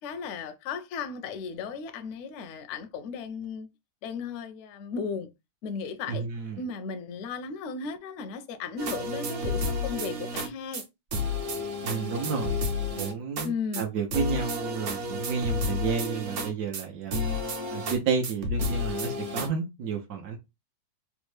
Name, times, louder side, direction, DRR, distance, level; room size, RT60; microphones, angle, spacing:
voice 1, 0.0-3.7 4.0-5.3 5.6-6.3 6.6-10.9 13.4-13.9, left 5 dB, 70° left, 0.7 m, -35 dB
voice 2, 6.1-6.6 11.8-12.6 13.0-17.2 17.7-20.4, right 5 dB, 80° right, 1.2 m, -31 dB
sound 1, 8.8-10.5 10.7-10.8 11.1-13.5 13.7-13.8 14.1-16.8 17.1-18.0 18.2-19.5, left 2 dB, 60° right, 1.0 m, -31 dB
3.5 x 2.1 x 3.2 m
omnidirectional pair, 1.6 m